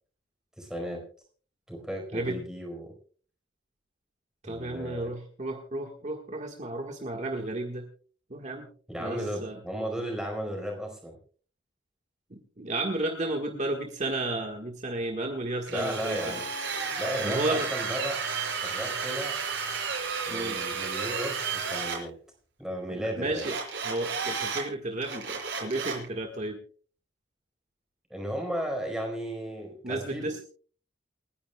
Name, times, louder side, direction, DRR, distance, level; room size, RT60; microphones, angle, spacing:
voice 1, 0.6-1.0 1.7-2.9 4.4-5.1 8.9-11.2 15.7-16.5 17.0-18.2 18.6-19.4 20.3-22.1 22.6-23.5 28.1-30.3, equal, 5° right, 1 dB, 4.5 m, -35 dB
voice 2, 4.4-7.8 8.3-8.7 9.0-9.6 12.3-16.4 17.2-17.7 20.3-20.6 22.9-23.5 23.8-26.6 29.8-30.4, right 2 dB, 40° right, 2 dB, 1.6 m, -33 dB
Drill, 15.7-22.0 23.4-24.6 25.0-26.1, right 5 dB, 70° right, 5.7 m, -32 dB
29.0 x 10.5 x 2.3 m, 0.42 s
head